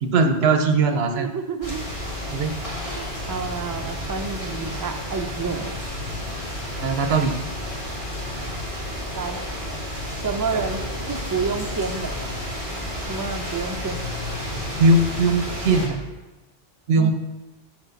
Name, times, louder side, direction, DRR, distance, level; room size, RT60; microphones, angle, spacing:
voice 1, 0.0-1.3 2.3-2.5 6.8-7.3 14.5-16.0 16.9-17.1, right 3 dB, 75° right, 7 dB, 1.0 m, -20 dB
voice 2, 1.0-1.8 2.8-5.8 9.1-9.4 10.2-10.8 11.1-12.1 13.1-14.0 16.9-17.1, right 5 dB, 35° right, 6 dB, 0.3 m, -29 dB
sound 1, 1.6-15.9, left 1 dB, 50° left, 2.2 m, -31 dB
5.9 x 5.2 x 6.4 m, 1.1 s
omnidirectional pair, 1.1 m